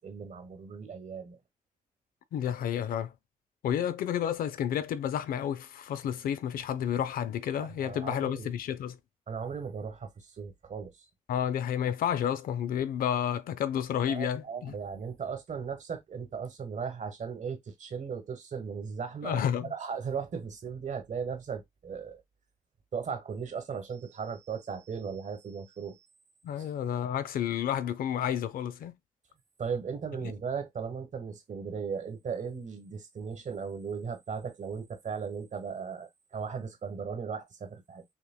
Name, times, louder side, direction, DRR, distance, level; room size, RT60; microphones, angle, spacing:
voice 1, 0.0-1.4 7.6-8.5 9.3-11.1 14.1-19.4 19.7-22.2 22.9-26.1 26.6-26.7 29.6-38.0, right 6 dB, 60° right, 1.3 m, -37 dB
voice 2, 2.3-3.1 3.6-9.0 11.3-14.7 19.2-19.7 26.4-28.9 30.2-30.3, left 9 dB, 85° left, 0.5 m, -31 dB
5.8 x 2.1 x 2.2 m
cardioid pair, 60°, 14 cm